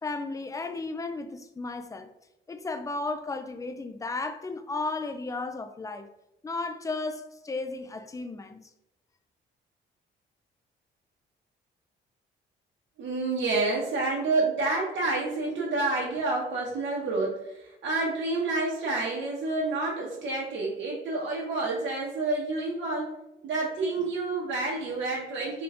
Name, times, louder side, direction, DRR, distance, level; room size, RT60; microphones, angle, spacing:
voice 1, 0.0-2.1 2.5-6.1 6.4-8.7, left 3 dB, 15° left, 0.4 m, -34 dB
voice 2, 13.0-23.1 23.4-25.6, right 3 dB, 65° right, 1.0 m, -29 dB
3.7 x 2.3 x 3.4 m
cardioid pair, 90°, 20 cm